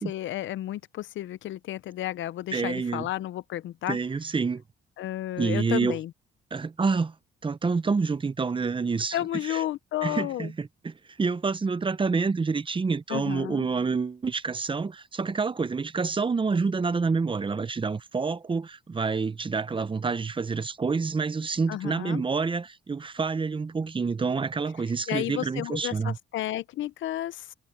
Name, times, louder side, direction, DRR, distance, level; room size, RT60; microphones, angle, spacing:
voice 1, 0.0-4.0 5.0-6.1 9.1-10.5 13.1-13.7 21.7-22.2 25.1-27.5, left 13 dB, 75° left, 0.7 m, -32 dB
voice 2, 2.5-3.1 3.9-4.6 5.4-6.0 6.5-7.1 7.4-9.2 9.4-9.6 10.0-26.2, right 4 dB, 25° right, 0.8 m, -28 dB
cardioid pair, 90°, 20 cm